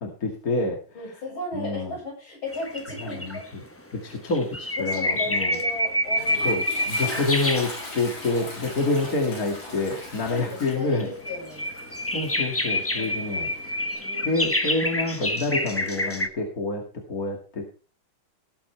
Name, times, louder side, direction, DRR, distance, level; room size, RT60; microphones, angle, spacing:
voice 1, 0.0-0.8 1.5-1.9 3.0-3.6 3.9-5.6 6.4-11.1 12.1-13.5 14.2-16.8 17.1-17.7, left 3 dB, 40° left, 1 dB, 2.7 m, -27 dB
voice 2, 0.9-3.4 4.7-6.6 10.3-11.7 13.0-13.6 14.0-14.5, left 2 dB, 65° left, -1 dB, 7.7 m, -36 dB
sound 1, 2.5-3.5 4.1-8.3 8.6-9.3 10.1-16.3, left 1 dB, 20° left, 0.4 m, -28 dB
Toilet flush, 5.7-13.9, left 2 dB, 90° left, 6.8 m, -39 dB
18.5 x 8.8 x 3.4 m, 0.35 s
omnidirectional pair, 2.4 m